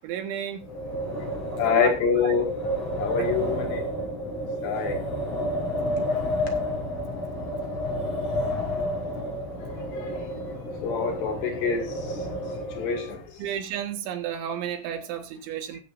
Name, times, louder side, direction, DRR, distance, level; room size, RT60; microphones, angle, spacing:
voice 1, 0.0-0.7 1.5-1.9 3.2-3.3 13.4-15.8, right 9 dB, 90° right, 6 dB, 3.9 m, -32 dB
Wind, 0.6-13.2, equal, 35° left, 4.9 m, -30 dB
voice 2, 1.6-2.5 3.0-3.8 4.6-5.0 10.0-10.1 10.8-12.2 12.7-13.2, left 6 dB, 70° left, 3 dB, 4.2 m, -26 dB
19.0 x 8.1 x 2.6 m, 0.27 s
omnidirectional pair, 5.2 m